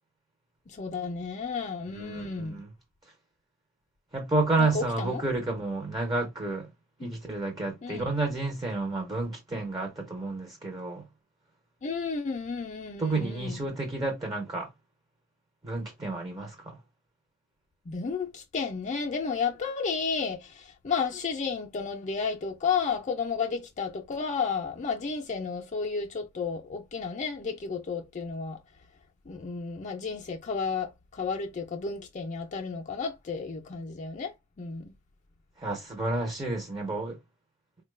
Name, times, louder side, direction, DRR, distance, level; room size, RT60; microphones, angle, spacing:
voice 1, 0.7-2.6 4.6-5.2 7.0-7.1 7.8-8.1 9.5-9.7 11.8-13.6 17.9-28.6 29.3-34.9, left 5 dB, 35° left, 0.4 m, -32 dB
voice 2, 1.9-2.7 4.1-6.7 7.0-11.0 13.0-14.7 15.6-16.8 35.6-37.2, right 2 dB, 20° right, 0.6 m, -30 dB
3.9 x 2.2 x 3.1 m
head